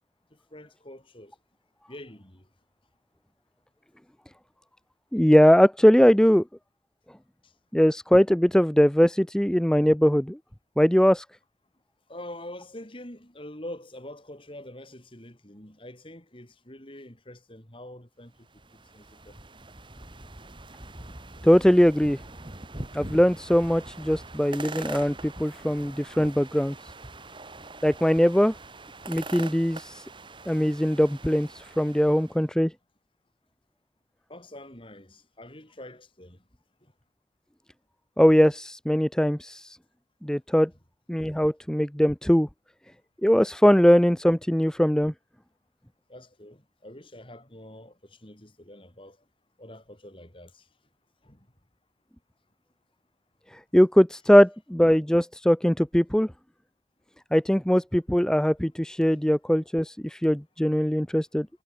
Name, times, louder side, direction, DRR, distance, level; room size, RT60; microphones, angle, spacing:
voice 1, 0.5-1.3 1.9-2.4 7.4-7.5 12.1-18.3 18.9-19.4 34.3-36.4 46.1-49.2 49.6-50.6 51.2-51.4, left 1 dB, 30° left, 4.8 m, -45 dB
voice 2, 5.1-6.4 7.7-10.4 10.8-11.2 21.4-22.2 22.9-26.7 27.8-28.5 29.1-30.0 30.5-32.7 38.2-39.8 40.2-40.7 41.1-42.5 43.2-45.1 53.7-56.3 57.3-61.5, equal, 5° left, 0.5 m, -21 dB
Creaking Tree in Liwa Forest, 18.4-32.4, right 2 dB, 25° right, 3.1 m, -43 dB
head